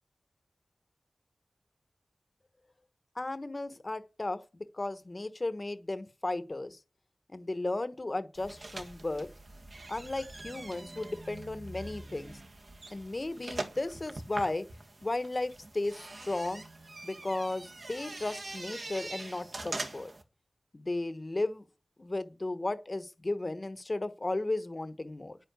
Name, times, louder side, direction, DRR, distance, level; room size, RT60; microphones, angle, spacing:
voice 1, 3.1-6.8 7.3-9.3 9.9-12.3 12.9-14.7 15.0-16.6 17.0-20.1 20.7-21.6 22.0-25.4, left 2 dB, 35° left, 11 dB, 1.2 m, -35 dB
sound 1, 8.3-20.2, right 2 dB, 55° right, 1.8 m, -43 dB
9.9 x 9.4 x 8.2 m, 0.35 s
wide cardioid pair, 90°, 0 cm